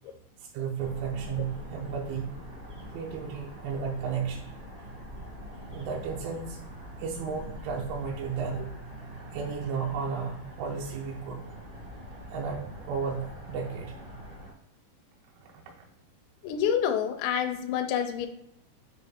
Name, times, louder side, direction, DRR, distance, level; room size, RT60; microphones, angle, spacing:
voice 1, 0.4-2.4 2.9-4.5 5.7-6.6 7.0-8.7 9.3-11.5 12.3-13.9 15.4-15.6, right 6 dB, 85° right, -2 dB, 3.3 m, -33 dB
sound 1, 0.8-14.5, equal, 65° right, 0.5 m, -44 dB
voice 2, 16.4-18.3, left 8 dB, 85° left, 6 dB, 2.7 m, -27 dB
8.6 x 3.5 x 3.5 m, 0.77 s
omnidirectional pair, 5.5 m